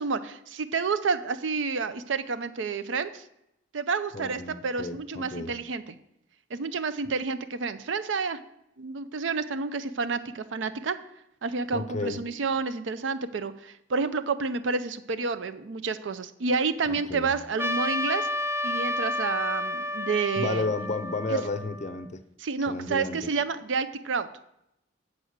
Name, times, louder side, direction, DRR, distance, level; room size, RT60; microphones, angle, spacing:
voice 1, 0.0-3.2 3.7-5.9 6.5-8.4 8.8-11.0 11.4-18.3 18.6-20.7 21.3-21.4 22.4-24.3, right 4 dB, 80° right, 12 dB, 0.5 m, -29 dB
voice 2, 4.1-5.5 11.7-12.2 16.9-17.3 20.4-22.2 22.7-23.3, left 3 dB, 40° left, 11 dB, 0.5 m, -32 dB
Trumpet, 17.6-22.0, left 1 dB, 15° right, 0.4 m, -31 dB
7.9 x 4.8 x 6.4 m, 0.81 s
head